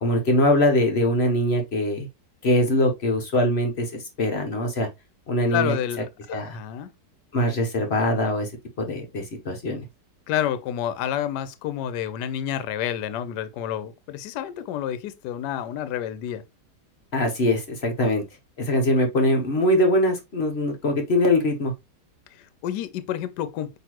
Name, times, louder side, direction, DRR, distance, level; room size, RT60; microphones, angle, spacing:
voice 1, 0.0-2.1 2.4-3.9 4.2-4.9 5.3-5.7 6.3-6.6 7.3-8.5 8.8-9.8 17.1-18.2 18.6-21.7, left 1 dB, 50° left, 0.8 m, -22 dB
voice 2, 5.5-6.9 10.3-16.4 22.3-23.8, left 10 dB, 75° left, 1.2 m, -29 dB
6.0 x 3.0 x 2.9 m
omnidirectional pair, 1.9 m